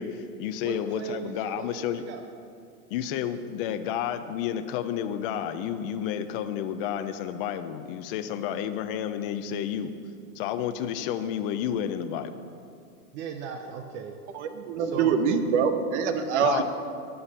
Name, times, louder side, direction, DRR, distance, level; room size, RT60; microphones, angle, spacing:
voice 1, 0.0-2.0 2.9-9.9 10.3-12.3 16.4-16.6, left 9 dB, 35° left, 10 dB, 0.8 m, -31 dB
voice 2, 0.6-2.2 13.1-14.1 14.8-15.2 16.3-16.6, right 7 dB, 25° right, 5 dB, 0.6 m, -38 dB
voice 3, 14.3-16.6, right 6 dB, 50° right, 8 dB, 1.2 m, -25 dB
12.0 x 11.0 x 5.6 m, 2.3 s
supercardioid pair, 155°, 45 cm